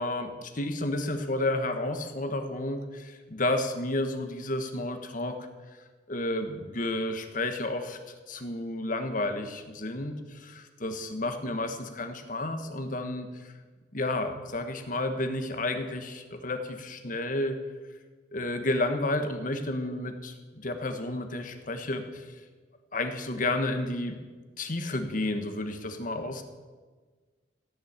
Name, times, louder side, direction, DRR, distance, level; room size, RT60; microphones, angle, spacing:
voice 1, 0.0-5.3 6.1-8.0 8.3-13.5 13.9-17.6 18.3-22.3 22.9-24.2 24.6-26.4, left 2 dB, 50° left, 7 dB, 1.3 m, -31 dB
16.5 x 7.2 x 8.1 m, 1.4 s
head